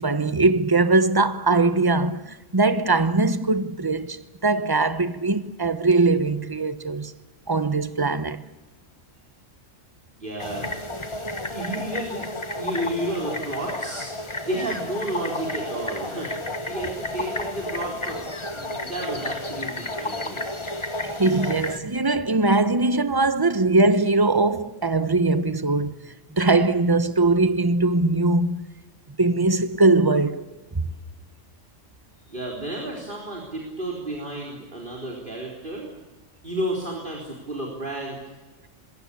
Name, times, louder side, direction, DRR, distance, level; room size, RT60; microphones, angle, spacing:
voice 1, 0.0-7.1 7.5-8.4 21.0-28.6 29.2-30.4 30.7-30.9, right 3 dB, 20° right, 1.0 m, -21 dB
voice 2, 10.2-10.7 11.5-12.3 12.6-14.1 14.4-18.2 18.5-20.8 32.3-35.9 36.4-38.2, right 1 dB, 40° right, 4.2 m, -32 dB
sound 1, 10.4-21.8, left 2 dB, 25° left, 1.5 m, -32 dB
26.5 x 21.5 x 8.4 m
omnidirectional pair, 1.3 m